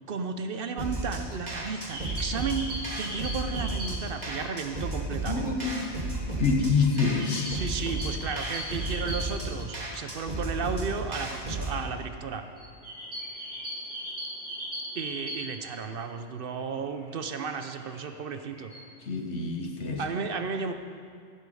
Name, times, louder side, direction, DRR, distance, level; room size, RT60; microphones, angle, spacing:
voice 1, 0.1-5.7 7.5-12.5 14.9-18.7 20.0-20.7, right 5 dB, 60° right, 8 dB, 0.8 m, -34 dB
sound 1, 0.8-11.8, right 2 dB, 40° right, 1.8 m, -34 dB
sound 2, 1.7-4.2 4.5-4.6 4.9-9.7 10.1-10.2 10.4-10.6 11.1-16.1 16.6-18.8, equal, 75° right, 3.5 m, -39 dB
voice 2, 5.3-5.9 6.4-7.5 19.1-20.0, left 4 dB, 80° left, 3 dB, 1.5 m, -26 dB
15.5 x 8.2 x 5.4 m, 2.2 s
omnidirectional pair, 1.2 m